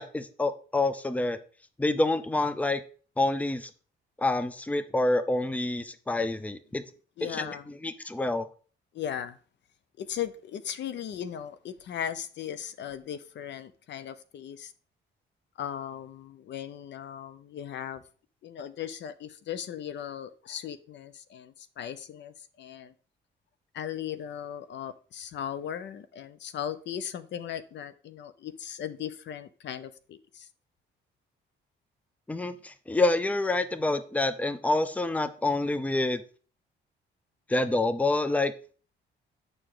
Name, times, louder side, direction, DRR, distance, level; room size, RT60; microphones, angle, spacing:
voice 1, 0.0-1.4 1.8-2.8 3.2-3.7 4.2-6.8 7.3-7.6 7.8-8.5 32.3-36.2 37.5-38.5, left 2 dB, 5° left, 0.6 m, -27 dB
voice 2, 7.2-7.7 8.9-9.4 10.0-14.7 15.6-18.0 18.4-22.9 23.7-30.5, left 9 dB, 65° left, 0.6 m, -37 dB
7.8 x 4.8 x 3.8 m
cardioid pair, 90°, 20 cm